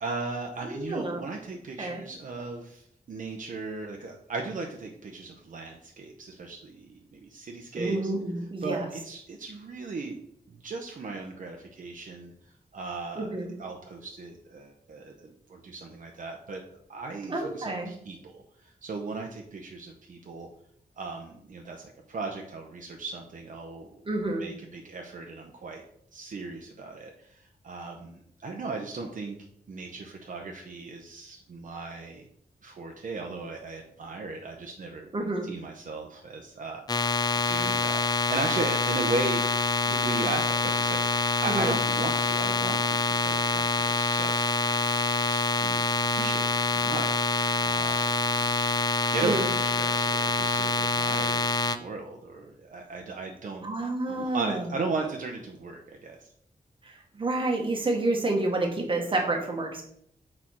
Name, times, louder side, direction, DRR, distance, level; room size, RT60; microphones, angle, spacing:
voice 1, 0.0-8.1 8.6-10.2 10.6-12.3 12.7-16.6 16.9-20.5 21.0-24.0 24.4-25.8 26.1-29.4 29.7-32.3 32.6-35.1 35.4-37.1 37.4-39.5 39.8-44.5 45.3-45.8 46.1-47.3 47.6-48.5 49.1-53.7 54.1-56.3, right 3 dB, 55° right, 2 dB, 0.7 m, -37 dB
voice 2, 0.6-1.2 1.8-2.0 7.7-8.9 13.1-13.5 17.3-17.9 24.1-24.4 35.1-35.5 41.5-41.7 49.2-49.5 53.6-54.7 56.8-59.8, right 2 dB, 35° right, 2 dB, 1.1 m, -29 dB
sound 1, 36.9-51.8, left 3 dB, 25° left, 0.4 m, -26 dB
6.5 x 4.3 x 4.3 m, 0.71 s
wide cardioid pair, 170°, 16 cm